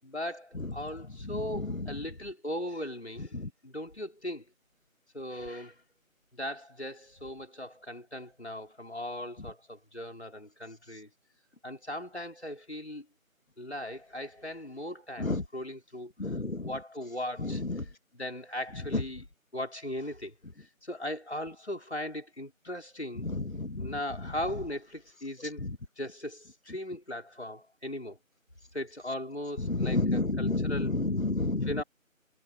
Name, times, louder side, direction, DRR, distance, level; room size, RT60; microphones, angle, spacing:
voice 1, 0.0-3.4 3.6-4.5 5.1-5.8 6.3-11.1 11.6-13.1 13.6-16.3 16.6-17.6 18.1-19.2 19.5-23.3 23.8-25.7 26.0-28.2 28.7-30.9 31.7-31.8, left 1 dB, 50° left, 5.5 m, -38 dB
voice 2, 1.2-2.0 3.2-3.5 15.2-15.4 16.2-16.8 17.4-17.9 18.9-19.0 23.2-24.0 25.6-25.8 29.6-31.8, left 2 dB, 75° left, 1.9 m, -31 dB
figure-of-eight pair, 180°, 41 cm